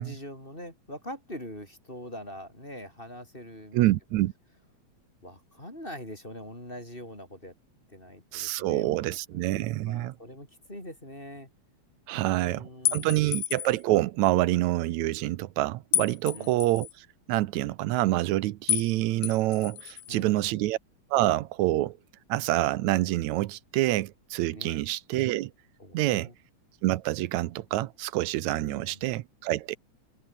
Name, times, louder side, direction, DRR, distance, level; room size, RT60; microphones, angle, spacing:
voice 1, 0.0-3.8 5.2-7.5 7.9-9.4 9.9-11.5 12.1-13.4 16.3-16.7 20.1-20.6 24.5-24.8 25.8-26.3 28.6-29.0, left 1 dB, 15° left, 7.4 m, -43 dB
voice 2, 3.7-4.3 8.3-10.1 12.1-20.8 21.1-22.0 22.3-25.5 25.9-26.3 26.8-29.8, right 16 dB, 85° right, 2.1 m, -27 dB
sound 1, 12.9-13.8 15.9-16.9 18.7-18.9 19.2-20.2, left 15 dB, 85° left, 2.4 m, -30 dB
omnidirectional pair, 3.3 m